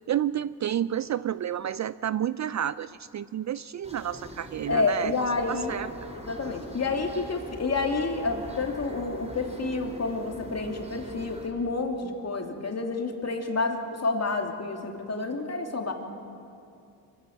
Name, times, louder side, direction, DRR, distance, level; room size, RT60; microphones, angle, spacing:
voice 1, 0.1-5.1 5.5-5.9, right 10 dB, 45° right, 17 dB, 0.4 m, -30 dB
sound 1, 3.8-11.5, equal, 15° right, 3.6 m, -43 dB
voice 2, 4.7-5.7 6.2-15.9, left 3 dB, 35° left, 3 dB, 2.7 m, -29 dB
24.0 x 15.5 x 7.2 m, 2.6 s
cardioid pair, 65°, 42 cm